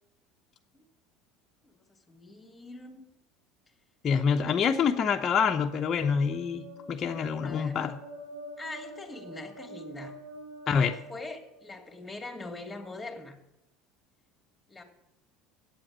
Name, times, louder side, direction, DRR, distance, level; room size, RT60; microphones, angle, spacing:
voice 1, 2.1-3.0 7.4-7.8 8.6-10.1 10.7-13.4 14.7-14.8, left 2 dB, 10° left, 2 dB, 2.4 m, -42 dB
voice 2, 4.0-8.0 10.7-10.9, left 6 dB, 40° left, 3 dB, 0.7 m, -26 dB
sound 1, 5.4-12.0, right 1 dB, 75° right, 2.2 m, -46 dB
8.7 x 7.7 x 7.3 m, 0.88 s
hypercardioid pair, 85°, 0 cm